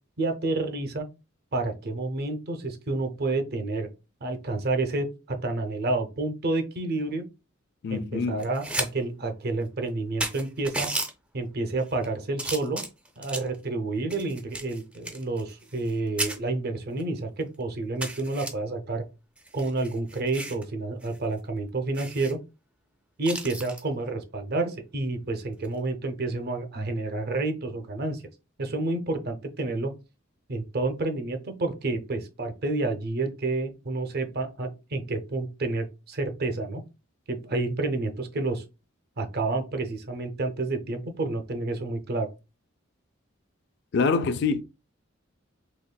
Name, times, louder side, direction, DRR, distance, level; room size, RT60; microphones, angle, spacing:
voice 1, 0.2-1.1 1.5-3.9 4.2-7.2 7.9-10.9 11.3-12.8 13.2-19.0 19.5-22.4 23.2-28.2 28.6-29.9 30.5-36.8 37.3-38.6 39.2-42.3, right 2 dB, 50° right, 0.6 m, -29 dB
voice 2, 7.8-8.5 43.9-44.6, left 4 dB, 55° left, 0.4 m, -25 dB
sound 1, 8.4-8.9 9.3-9.4 9.9-10.0 10.2-11.1 11.8-12.1 12.4-13.6 14.1-15.9 16.2-16.4 17.0-17.1 17.4-17.5 18.0-18.5 19.4-20.6 21.0-21.2 21.5-21.6 21.9-22.3 23.2-23.8 25.5-25.8, right 1 dB, 5° right, 0.5 m, -33 dB
4.1 x 2.9 x 2.2 m
head